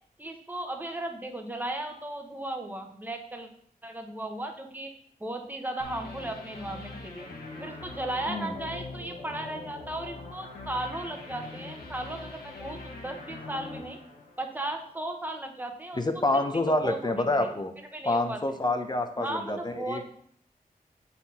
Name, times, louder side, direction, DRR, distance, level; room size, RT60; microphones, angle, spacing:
voice 1, 0.2-3.5 3.8-4.9 5.2-7.3 7.6-14.0 14.4-17.5 17.9-18.4 19.2-20.0, right 1 dB, 10° right, 4 dB, 0.9 m, -36 dB
sound 1, 5.8-14.8, left 3 dB, 75° left, 1.3 m, -42 dB
voice 2, 8.3-8.6 16.0-17.7 18.1-20.1, left 2 dB, 25° left, 6 dB, 0.7 m, -27 dB
7.9 x 4.2 x 4.2 m, 0.63 s
wide cardioid pair, 105°, 16 cm